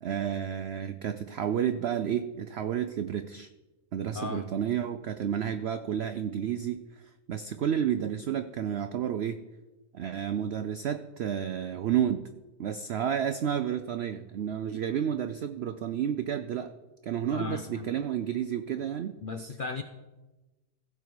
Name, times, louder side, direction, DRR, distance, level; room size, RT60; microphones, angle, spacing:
voice 1, 0.0-3.5 3.9-6.8 7.3-9.4 9.9-12.3 12.6-16.7 17.0-19.2, right 9 dB, 80° right, 10 dB, 0.5 m, -31 dB
voice 2, 4.1-4.5 17.3-17.9 19.2-19.8, left 4 dB, 70° left, 7 dB, 0.5 m, -36 dB
15.5 x 6.9 x 4.6 m, 1.1 s
omnidirectional pair, 1.6 m